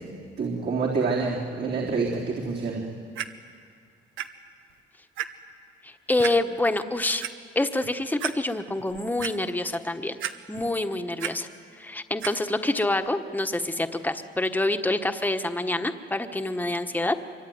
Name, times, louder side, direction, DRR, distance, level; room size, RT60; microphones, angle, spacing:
voice 1, 0.0-2.8, right 4 dB, 60° right, -3 dB, 3.9 m, -27 dB
Clock, 3.1-3.2 4.2-4.3 4.7-4.8 5.2-5.3 6.2-6.3 7.0-7.3 7.8-7.9 8.2-8.3 8.8-9.3 10.2-10.7 11.0-11.3 12.2-12.3 13.0-13.1, right 10 dB, 80° right, 1.3 m, -32 dB
voice 2, 5.8-7.3 7.5-10.2 10.5-11.5 11.8-17.2, left 2 dB, 10° left, 7 dB, 1.3 m, -27 dB
24.5 x 24.5 x 9.5 m, 2.2 s
cardioid pair, 90°, 20 cm